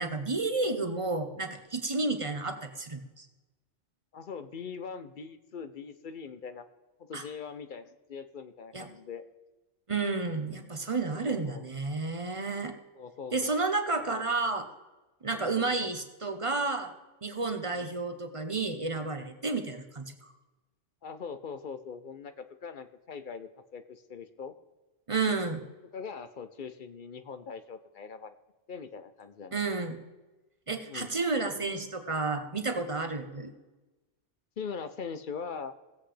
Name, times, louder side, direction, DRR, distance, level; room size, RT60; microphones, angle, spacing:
voice 1, 0.0-3.3 7.1-7.2 8.7-8.9 9.9-12.7 13.3-14.7 15.2-16.9 17.2-20.1 25.1-25.6 29.5-30.0 30.7-33.5, right 3 dB, 30° right, 6 dB, 0.8 m, -31 dB
voice 2, 4.1-6.7 7.0-9.2 11.1-11.7 12.9-13.5 14.0-14.2 15.3-16.0 17.7-17.9 21.0-24.5 25.9-28.3 28.7-29.6 30.8-31.1 34.6-35.7, left 6 dB, 50° left, 10 dB, 0.7 m, -42 dB
17.0 x 8.0 x 3.3 m, 1.1 s
omnidirectional pair, 1.2 m